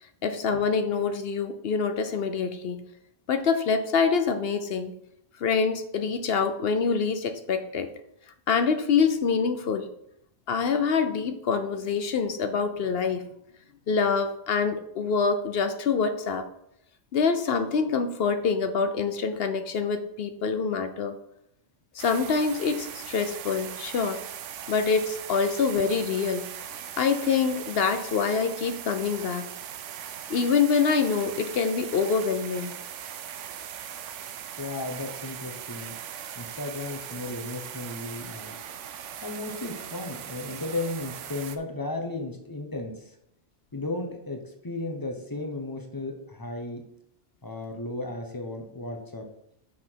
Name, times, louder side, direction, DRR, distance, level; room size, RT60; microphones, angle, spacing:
voice 1, 0.2-2.8 3.3-5.0 5.4-7.9 8.5-9.9 10.5-13.3 13.9-16.5 17.1-21.2 21.9-24.2 24.7-26.5 27.0-29.5 30.3-32.7, left 5 dB, 60° left, 9 dB, 0.8 m, -25 dB
sound 1, 22.0-41.6, right 9 dB, 90° right, 1.0 m, -39 dB
voice 2, 34.6-36.0 36.3-38.5 39.2-43.2 43.7-46.9 47.4-49.3, left 2 dB, 20° left, 3 dB, 0.9 m, -35 dB
6.3 x 5.9 x 4.6 m, 0.75 s
omnidirectional pair, 1.2 m